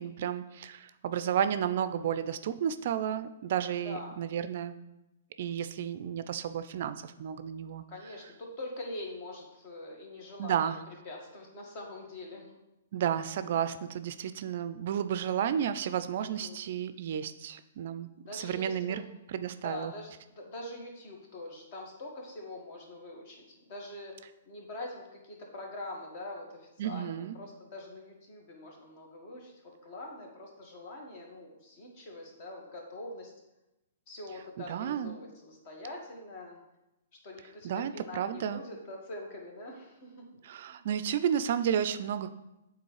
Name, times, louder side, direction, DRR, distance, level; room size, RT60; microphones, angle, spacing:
voice 1, 0.0-4.7 5.4-7.8 10.4-10.8 12.9-19.0 19.3-19.9 26.8-27.4 34.6-35.1 37.6-38.6 40.4-42.3, right 9 dB, 55° right, 12 dB, 0.3 m, -32 dB
voice 2, 7.9-10.8 11.1-12.6 16.2-16.6 18.3-19.0 19.6-33.3 34.1-36.6 37.2-40.3 40.7-40.9, left 2 dB, 45° left, 0 dB, 1.6 m, -44 dB
8.2 x 3.8 x 3.2 m, 0.95 s
figure-of-eight pair, 120°, 0 cm